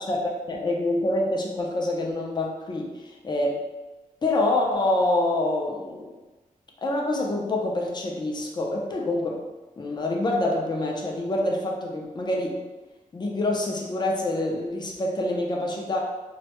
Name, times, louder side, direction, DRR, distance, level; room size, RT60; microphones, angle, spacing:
voice 1, 0.0-3.6 4.2-6.1 6.8-9.4 9.8-12.6 13.1-16.0, left 2 dB, 30° left, 0 dB, 0.4 m, -26 dB
2.2 x 2.0 x 2.8 m, 1.1 s
wide cardioid pair, 120°, 14 cm